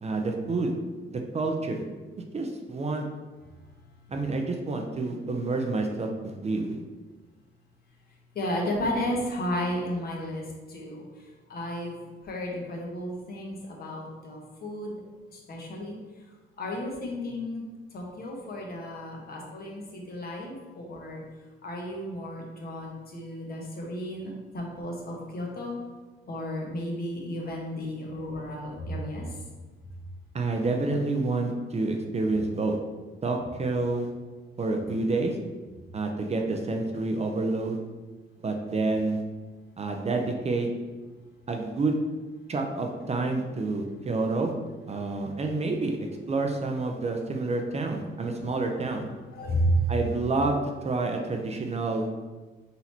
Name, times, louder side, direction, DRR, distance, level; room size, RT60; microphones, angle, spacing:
voice 1, 0.0-0.7 1.1-1.8 2.3-3.1 4.1-6.8 30.3-32.8 33.2-34.1 34.6-35.4 35.9-37.8 38.4-39.2 39.8-40.7 41.5-42.0 42.5-44.5 44.9-49.1 49.9-50.6 50.8-52.1, right 3 dB, 35° right, 3 dB, 0.6 m, -28 dB
voice 2, 8.3-10.4 10.7-11.0 11.5-12.0 12.2-15.0 15.3-16.0 16.6-17.6 17.9-21.2 21.6-25.8 26.3-29.3 44.9-45.0 49.3-49.8, equal, 50° left, -1 dB, 1.2 m, -33 dB
4.0 x 2.9 x 4.3 m, 1.3 s
cardioid pair, 90°, 20 cm